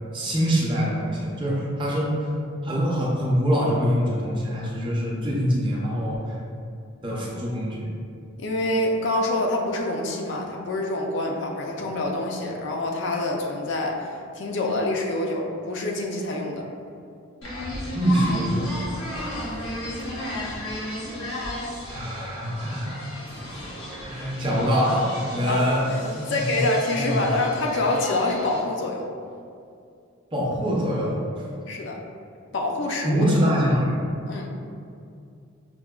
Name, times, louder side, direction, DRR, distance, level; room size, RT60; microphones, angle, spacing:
voice 1, 0.1-2.1 2.6-6.3 7.0-7.9 17.9-18.7 21.9-23.1 24.0-25.8 26.1-26.6 26.9-27.4 30.3-31.2 33.0-33.9, equal, 25° right, -5 dB, 0.6 m, -24 dB
voice 2, 8.4-16.7 25.5-29.1 31.7-32.0 32.5-33.2 34.3-34.5, left 2 dB, 55° left, 0 dB, 0.4 m, -26 dB
sound 1, 17.4-28.6, left 1 dB, 90° left, 1.2 m, -34 dB
5.8 x 2.1 x 2.3 m, 2.4 s
head